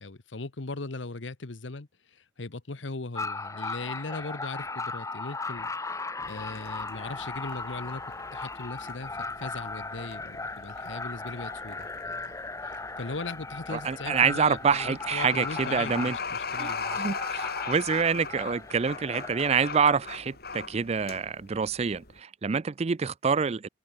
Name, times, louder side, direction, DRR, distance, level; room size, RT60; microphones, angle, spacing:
voice 1, 0.0-8.0 8.3-12.3 13.0-17.0, left 3 dB, 85° left, 1.2 m, -39 dB
sound 1, 3.1-19.9, left 3 dB, 15° left, 1.2 m, -37 dB
sound 2, 6.2-22.2, left 5 dB, 55° left, 6.4 m, -40 dB
voice 2, 13.7-16.2 16.6-16.7 17.0-23.7, right 6 dB, 35° right, 0.4 m, -26 dB
open air
head